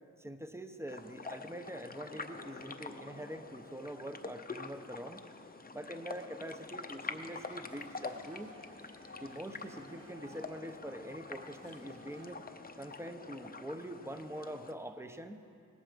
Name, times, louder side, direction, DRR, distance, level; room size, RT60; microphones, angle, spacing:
voice 1, 0.2-5.2 5.7-8.5 9.2-12.4 12.8-15.4, equal, 10° right, 8 dB, 0.9 m, -44 dB
sound 1, 0.9-14.7, left 3 dB, 25° left, 0.8 m, -46 dB
sound 2, 7.2-12.4, equal, 45° right, 2.2 m, -58 dB
18.5 x 14.0 x 5.2 m, 2.5 s
wide cardioid pair, 90°, 33 cm